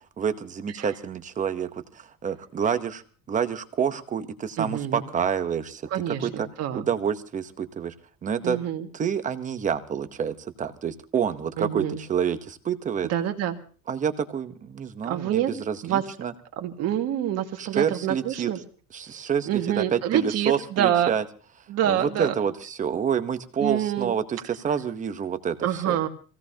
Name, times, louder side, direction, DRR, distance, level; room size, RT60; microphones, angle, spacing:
voice 1, 0.2-3.0 3.3-6.5 6.7-7.9 8.2-8.6 8.9-13.1 13.9-16.3 17.6-18.5 18.9-21.2 21.8-26.0, right 7 dB, 20° right, 10 dB, 0.9 m, -28 dB
voice 2, 4.6-5.0 5.9-6.8 8.4-8.9 11.6-12.0 13.1-13.6 15.0-15.5 15.8-16.0 16.6-18.6 19.5-21.1 21.7-22.3 23.6-24.1 25.6-26.1, right 11 dB, 45° right, 5 dB, 1.9 m, -26 dB
25.5 x 17.0 x 2.8 m, 0.39 s
cardioid pair, 175°, 34 cm